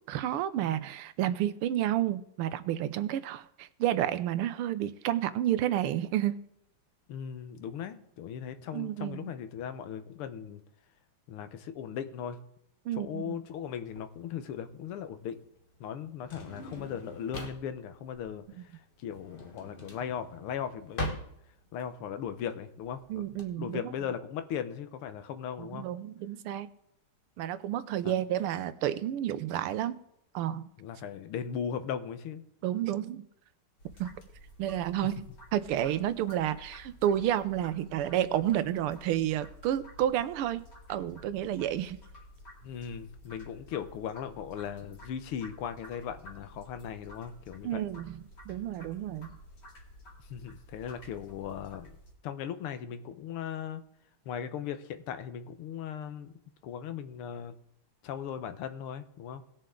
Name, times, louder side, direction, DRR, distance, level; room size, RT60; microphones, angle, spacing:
voice 1, 0.1-6.4 8.7-9.3 12.8-13.4 23.1-23.9 25.6-26.7 27.4-30.0 30.3-30.7 32.6-33.2 34.0-34.2 34.6-35.3 35.5-40.6 40.9-42.0 47.6-49.3, right 11 dB, 85° right, 1.6 m, -30 dB
voice 2, 7.1-10.6 11.3-12.4 13.0-15.4 15.8-18.7 19.0-21.2 21.7-23.2 23.6-25.9 28.0-28.2 30.8-32.5 42.6-47.8 50.2-52.0 52.2-53.8 54.3-56.3 56.6-57.5 58.0-59.4, left 8 dB, 80° left, 1.8 m, -38 dB
Drawer open or close, 13.8-23.4, left 1 dB, 30° left, 1.2 m, -42 dB
sound 1, 33.8-52.1, equal, 50° left, 3.1 m, -52 dB
19.0 x 6.7 x 3.7 m
omnidirectional pair, 2.4 m